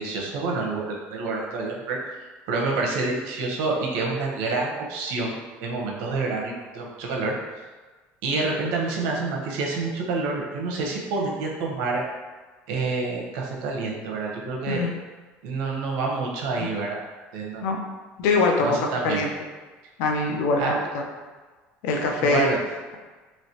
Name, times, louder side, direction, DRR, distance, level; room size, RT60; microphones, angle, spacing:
voice 1, 0.0-2.0 2.5-7.3 8.2-12.0 12.7-14.9 15.4-17.0 17.3-17.6 18.6-19.2 20.6-20.7 22.2-22.6, right 3 dB, 80° right, -1 dB, 0.7 m, -28 dB
voice 2, 18.2-19.3 20.0-21.0 21.8-22.5, left 3 dB, 80° left, 1 dB, 0.6 m, -23 dB
3.2 x 2.9 x 2.8 m, 1.3 s
cardioid pair, 140°, 5 cm